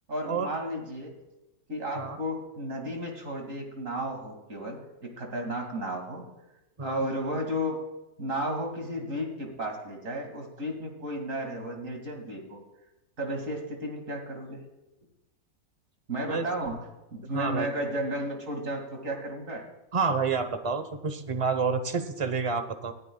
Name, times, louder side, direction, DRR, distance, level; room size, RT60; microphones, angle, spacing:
voice 1, 0.1-1.1 1.7-6.3 6.8-7.8 8.2-12.6 13.2-14.6 16.1-16.9 17.1-19.6, equal, 60° right, 2 dB, 2.7 m, -33 dB
voice 2, 17.2-17.7 19.9-22.9, right 5 dB, 25° right, 9 dB, 0.8 m, -29 dB
20.0 x 13.5 x 2.3 m, 0.99 s
omnidirectional pair, 1.6 m